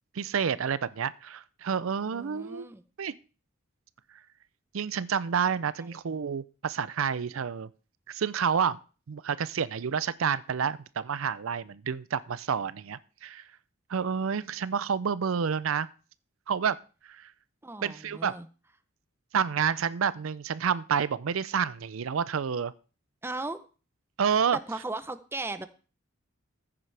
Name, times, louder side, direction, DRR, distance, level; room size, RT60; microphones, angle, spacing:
voice 1, 0.1-2.7 3.0-3.1 4.7-7.7 8.1-8.8 9.1-13.4 13.9-15.9 16.5-16.8 17.1-17.3 17.8-18.3 19.3-22.7 24.2-24.6, right 7 dB, 85° right, 17 dB, 0.5 m, -29 dB
voice 2, 2.1-2.8 17.6-18.5 23.2-23.6 24.5-25.7, right 2 dB, 10° right, 11 dB, 0.7 m, -36 dB
14.0 x 9.8 x 3.4 m, 0.36 s
head